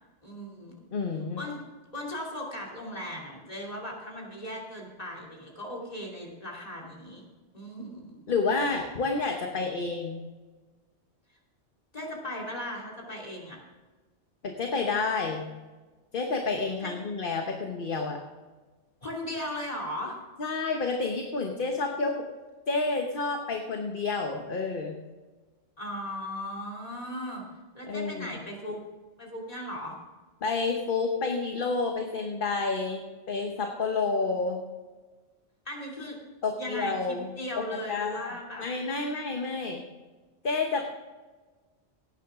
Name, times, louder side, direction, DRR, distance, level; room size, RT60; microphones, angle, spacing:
voice 1, 0.2-0.7 1.4-1.6 1.9-7.2 7.5-8.2 11.9-13.6 16.8-16.9 19.0-20.2 25.8-27.4 27.7-28.8 29.2-30.0 35.6-36.2 36.6-38.7, left 1 dB, 35° left, -2 dB, 3.0 m, -37 dB
voice 2, 0.9-1.4 8.3-10.2 14.4-15.5 16.1-18.2 20.4-22.3 22.7-25.0 27.9-28.3 30.4-34.6 36.4-37.3 37.9-39.8 40.4-40.8, left 4 dB, 50° left, 3 dB, 1.2 m, -29 dB
17.5 x 9.3 x 3.7 m, 1.3 s
omnidirectional pair, 1.2 m